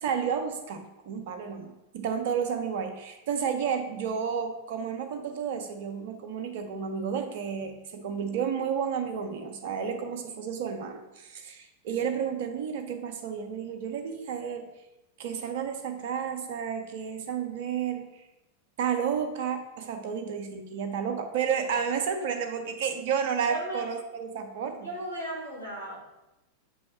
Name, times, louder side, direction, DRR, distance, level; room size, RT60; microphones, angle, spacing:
voice 1, 0.0-14.7 15.2-18.2 18.8-24.9, right 7 dB, 50° right, 6 dB, 0.7 m, -31 dB
voice 2, 23.5-23.9 24.8-26.0, right 1 dB, 90° left, -4 dB, 1.8 m, -36 dB
7.2 x 3.2 x 4.3 m, 0.94 s
figure-of-eight pair, 90°, 0 cm